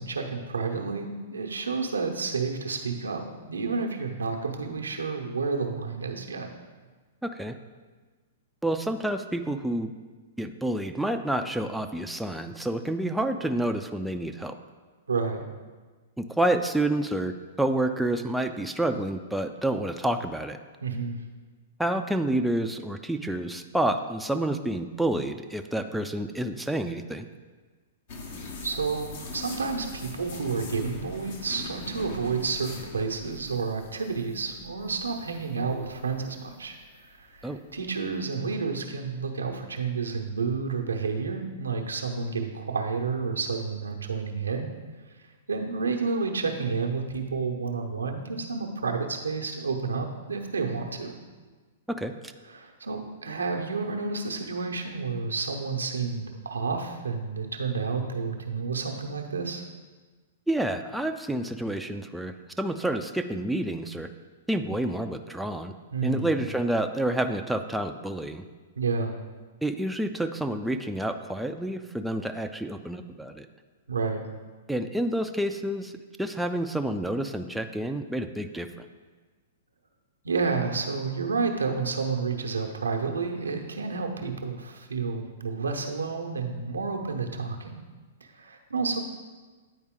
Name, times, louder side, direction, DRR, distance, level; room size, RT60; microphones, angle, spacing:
voice 1, 0.0-3.2 3.5-6.5 15.1-15.4 20.8-21.2 28.6-36.8 37.2-44.7 45.5-51.2 52.5-59.6 65.9-66.3 68.8-69.1 73.9-74.2 80.2-87.8 88.2-89.0, right 4 dB, 90° right, 3 dB, 0.8 m, -30 dB
voice 2, 7.2-7.6 8.6-9.9 10.4-14.5 16.2-20.6 21.8-27.3 37.4-37.6 51.9-52.1 60.5-64.1 64.5-65.7 66.0-68.4 69.6-73.5 74.7-75.9 76.2-78.9, right 1 dB, 5° right, 5 dB, 0.4 m, -29 dB
sound 1, 28.1-38.2, left 3 dB, 60° left, 1.0 m, -42 dB
9.5 x 4.3 x 3.7 m, 1.4 s
hypercardioid pair, 115°, 0 cm